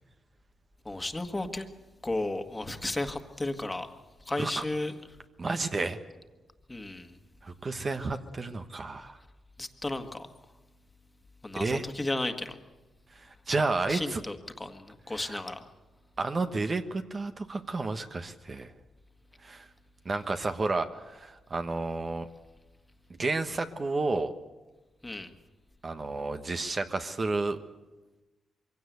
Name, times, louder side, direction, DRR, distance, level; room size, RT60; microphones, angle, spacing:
voice 1, 0.8-1.7 2.0-3.9 4.2-4.9 6.7-7.2 9.6-10.3 11.4-12.6 13.9-15.7 25.0-25.3, left 2 dB, 20° left, 6 dB, 1.7 m, -34 dB
voice 2, 5.4-6.0 7.4-9.2 11.6-11.9 13.5-14.2 15.1-15.4 16.2-18.7 19.4-19.7 20.0-22.3 23.2-24.3 25.8-27.6, right 3 dB, 40° right, 7 dB, 1.2 m, -31 dB
23.0 x 16.5 x 8.2 m, 1.2 s
cardioid pair, 75°, 0 cm